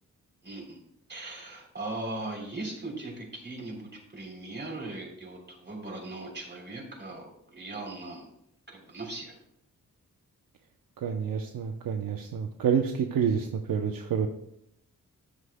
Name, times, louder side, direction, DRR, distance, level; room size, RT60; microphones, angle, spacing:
voice 1, 0.4-0.8 1.1-8.2 8.7-9.3, right 2 dB, 30° right, 0 dB, 3.4 m, -39 dB
voice 2, 11.0-14.3, right 7 dB, 85° right, 4 dB, 0.8 m, -28 dB
13.0 x 9.8 x 2.2 m, 0.74 s
wide cardioid pair, 115°, 33 cm